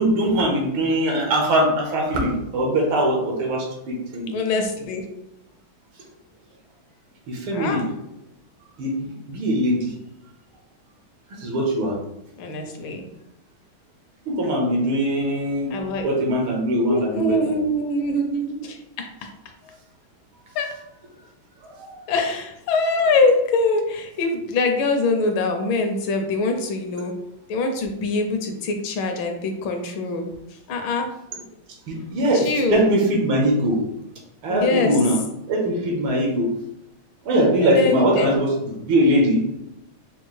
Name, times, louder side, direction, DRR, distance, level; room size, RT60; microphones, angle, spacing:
voice 1, 0.0-4.4 7.3-7.9 8.8-9.9 11.4-12.0 14.3-15.7 16.0-17.4 21.6-22.0 31.9-33.8 34.4-35.2 35.5-36.5 37.2-39.4, right 1 dB, 80° right, 0 dB, 1.8 m, -21 dB
voice 2, 4.3-5.0 7.5-7.8 12.4-13.1 15.7-16.0 16.9-19.1 20.5-20.7 22.1-27.1 27.5-30.3 30.7-31.1 32.3-32.9 34.5-34.9 37.6-38.3, left 2 dB, 75° left, 4 dB, 1.3 m, -23 dB
5.4 x 2.3 x 3.1 m, 0.87 s
omnidirectional pair, 2.3 m